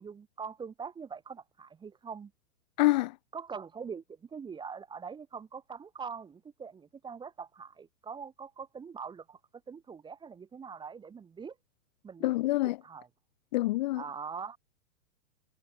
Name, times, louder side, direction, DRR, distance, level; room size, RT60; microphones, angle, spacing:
voice 1, 0.0-2.3 3.3-9.4 9.7-11.6 12.0-12.3 12.6-13.1 13.9-14.6, right 6 dB, 10° right, 1.2 m, -43 dB
voice 2, 2.8-3.1 12.2-12.8 13.5-14.0, left 18 dB, 30° left, 0.5 m, -26 dB
hypercardioid pair, 135°, 44 cm